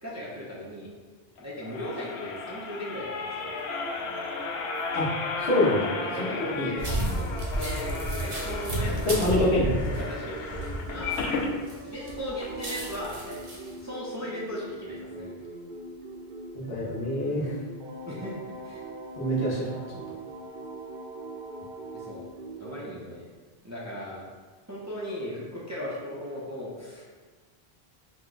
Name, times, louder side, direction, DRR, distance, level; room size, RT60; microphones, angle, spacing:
voice 1, 0.0-0.9 1.4-3.5 6.0-9.4 9.9-11.2 11.8-13.4 13.8-15.3 18.1-18.3 18.6-18.9 21.9-22.3 22.6-23.3 23.6-24.2 24.7-27.0, left 1 dB, 20° right, -6 dB, 0.6 m, -37 dB
sound 1, 1.4-11.5 12.0-12.1 12.4-12.5, left 4 dB, 90° left, 0.9 m, -35 dB
sound 2, 3.4-22.8, right 2 dB, 60° right, 0.8 m, -42 dB
voice 2, 5.4-6.0 6.4-6.7 9.1-9.8 16.5-17.6 19.2-20.0, left 1 dB, 70° left, -5 dB, 1.1 m, -26 dB
sound 3, 6.8-11.7 12.1-13.7, right 1 dB, 40° right, 1.0 m, -31 dB
4.8 x 2.2 x 3.8 m, 1.4 s
omnidirectional pair, 1.1 m